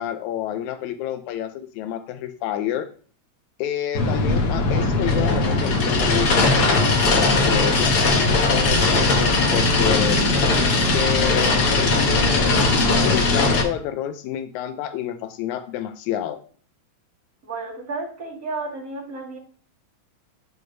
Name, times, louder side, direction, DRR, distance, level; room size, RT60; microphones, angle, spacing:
voice 1, 0.0-2.9 3.6-10.5 10.9-16.4, left 11 dB, 90° left, 8 dB, 2.0 m, -29 dB
sound 1, 3.9-13.6, left 3 dB, 75° left, 0.9 m, -19 dB
voice 2, 17.4-19.4, right 3 dB, 35° right, -4 dB, 2.0 m, -32 dB
11.0 x 4.7 x 2.6 m, 0.44 s
omnidirectional pair, 3.3 m